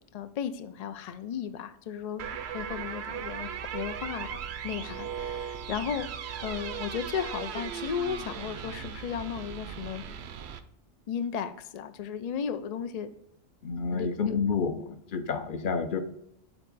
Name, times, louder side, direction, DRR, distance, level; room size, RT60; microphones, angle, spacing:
voice 1, 0.0-2.3 2.5-6.1 6.4-10.0 11.1-13.1 13.9-14.4, left 8 dB, 90° left, 10 dB, 0.3 m, -35 dB
sound 1, 2.2-10.6, right 8 dB, 65° right, 0.8 m, -37 dB
voice 2, 13.6-16.0, left 5 dB, 50° left, 9 dB, 0.7 m, -29 dB
7.0 x 4.6 x 4.0 m, 0.79 s
omnidirectional pair, 1.3 m